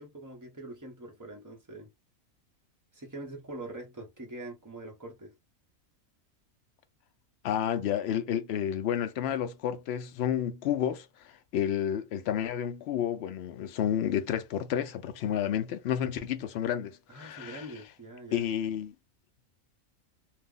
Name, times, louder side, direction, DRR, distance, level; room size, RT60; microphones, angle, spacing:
voice 1, 0.0-1.9 2.9-5.3 17.1-18.5, right 2 dB, 15° right, 0.7 m, -44 dB
voice 2, 7.4-17.6 18.3-18.9, left 9 dB, 65° left, 0.7 m, -31 dB
2.7 x 2.1 x 3.6 m
omnidirectional pair, 1.4 m